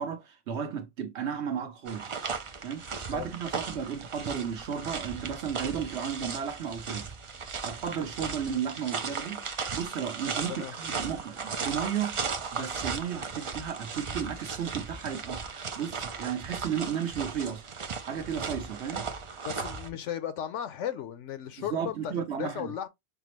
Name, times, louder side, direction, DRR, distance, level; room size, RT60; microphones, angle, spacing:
voice 1, 0.0-2.2 2.6-7.1 7.6-9.4 9.7-12.2 12.5-17.6 18.0-19.1 21.6-22.7, right 8 dB, 65° right, 1.1 m, -34 dB
sound 1, 1.9-19.9, right 5 dB, 50° right, 0.4 m, -36 dB
voice 2, 19.5-22.9, left 10 dB, 80° left, 1.0 m, -35 dB
5.9 x 2.0 x 3.0 m
omnidirectional pair, 1.3 m